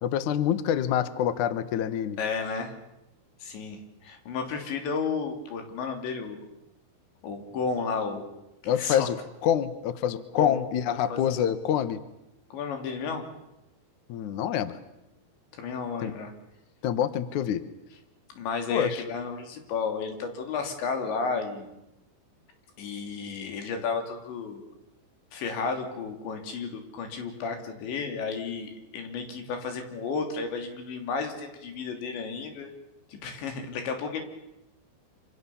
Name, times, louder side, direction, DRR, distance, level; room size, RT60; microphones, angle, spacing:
voice 1, 0.0-2.2 8.7-9.2 9.4-12.0 14.1-14.8 16.0-16.1 16.8-17.6 18.7-19.0, left 10 dB, 65° left, 12 dB, 2.1 m, -26 dB
voice 2, 2.2-2.7 3.4-6.4 7.2-8.3 8.6-9.1 10.4-10.6 11.1-11.5 12.5-13.3 15.5-16.3 18.4-21.7 22.8-24.6 25.3-32.7 33.1-34.2, left 5 dB, 90° left, 5 dB, 5.3 m, -32 dB
27.0 x 26.5 x 7.1 m, 0.91 s
omnidirectional pair, 5.0 m